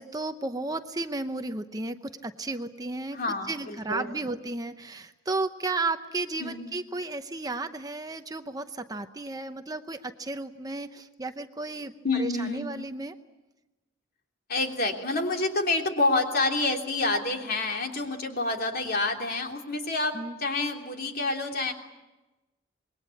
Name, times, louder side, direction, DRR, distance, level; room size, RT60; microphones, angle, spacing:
voice 1, 0.0-3.2 3.5-13.1 20.1-20.4, right 2 dB, 20° right, 8 dB, 0.8 m, -33 dB
voice 2, 3.1-4.1 6.4-6.7 12.0-12.8 14.5-21.7, left 2 dB, 50° left, 2 dB, 3.2 m, -28 dB
26.5 x 21.5 x 8.5 m, 1.1 s
head